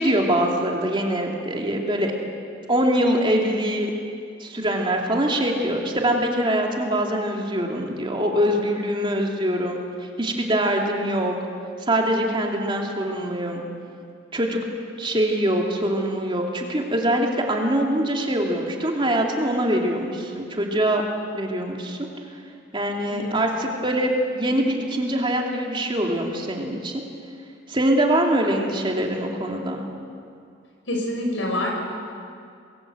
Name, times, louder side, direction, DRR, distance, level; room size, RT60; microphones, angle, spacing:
voice 1, 0.0-2.1 2.7-3.9 4.4-9.8 10.2-11.3 11.9-13.6 14.3-14.6 15.0-21.0 21.3-22.0 22.7-26.9 27.7-29.8, right 1 dB, 25° right, 0 dB, 2.9 m, -23 dB
voice 2, 30.9-31.7, left 1 dB, 80° left, 1 dB, 6.6 m, -26 dB
26.5 x 22.0 x 7.9 m, 2.3 s
head